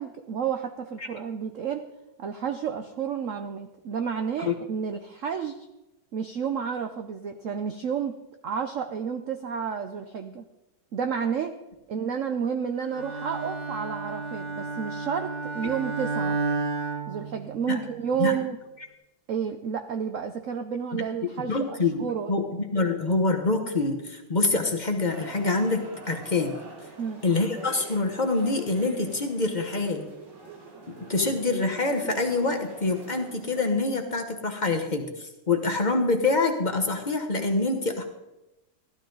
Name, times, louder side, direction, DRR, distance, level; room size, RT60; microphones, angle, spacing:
voice 1, 0.0-1.9 2.2-5.6 6.1-8.1 8.4-10.4 10.9-11.6 11.9-16.4 17.1-18.6 19.3-22.3 27.0-27.2, right 7 dB, 85° right, 7 dB, 0.7 m, -31 dB
Bowed string instrument, 12.9-17.9, right 3 dB, 35° right, 1.8 m, -32 dB
voice 2, 20.9-26.5 27.2-30.1 30.9-38.0, left 3 dB, 35° left, 3 dB, 0.7 m, -26 dB
sound 1, 25.1-33.6, right 3 dB, 60° right, 2.5 m, -43 dB
14.5 x 12.0 x 3.9 m, 0.97 s
omnidirectional pair, 2.2 m